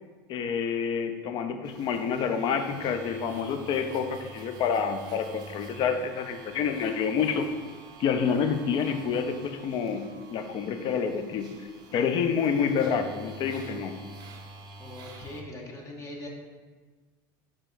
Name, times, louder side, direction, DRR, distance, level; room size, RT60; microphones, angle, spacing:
voice 1, 0.3-7.4 8.0-11.5 11.9-14.0, left 6 dB, 45° left, 7 dB, 0.4 m, -28 dB
sound 1, 1.6-15.4, right 2 dB, 40° right, 0.5 m, -48 dB
voice 2, 14.8-16.3, left 1 dB, 30° left, 0 dB, 0.8 m, -41 dB
4.8 x 2.8 x 2.5 m, 1.4 s
supercardioid pair, 115°, 11 cm